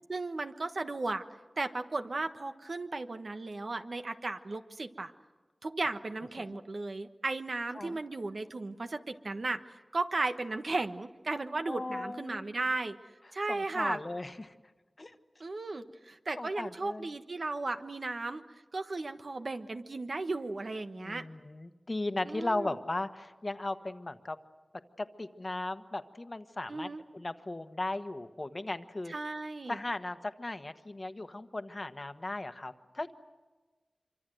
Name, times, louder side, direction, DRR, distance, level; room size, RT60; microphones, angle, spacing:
voice 1, 0.1-1.2 1.6-5.1 5.6-9.6 9.9-13.0 13.3-14.0 15.4-18.4 18.7-21.2 22.3-22.8 26.7-27.0 29.1-29.8, right 3 dB, 65° right, 8 dB, 1.3 m, -35 dB
voice 2, 11.7-12.5 13.5-14.5 15.0-15.2 16.4-17.1 21.0-24.4 25.0-29.1 29.7-33.1, left 2 dB, 40° left, 9 dB, 1.3 m, -37 dB
26.0 x 25.0 x 7.9 m, 1.3 s
wide cardioid pair, 60°, 0 cm